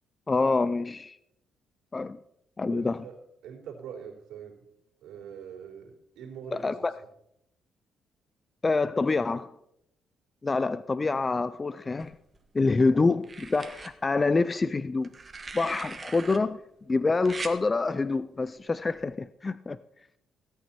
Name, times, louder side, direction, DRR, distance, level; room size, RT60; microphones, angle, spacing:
voice 1, 0.3-1.2 1.9-2.2 2.6-3.0 6.5-6.9 8.6-9.5 10.4-12.2 12.5-15.1 15.5-16.6 16.9-19.8, left 3 dB, 25° left, 0.4 m, -26 dB
voice 2, 2.7-3.2 3.4-4.6 5.0-6.8, right 7 dB, 85° right, 3.6 m, -43 dB
sound 1, 12.0-12.7 13.2-13.9 15.0-16.4 17.3-17.6 18.9-19.1, right 4 dB, 30° right, 1.4 m, -40 dB
16.5 x 8.8 x 4.4 m
cardioid pair, 90°, 0 cm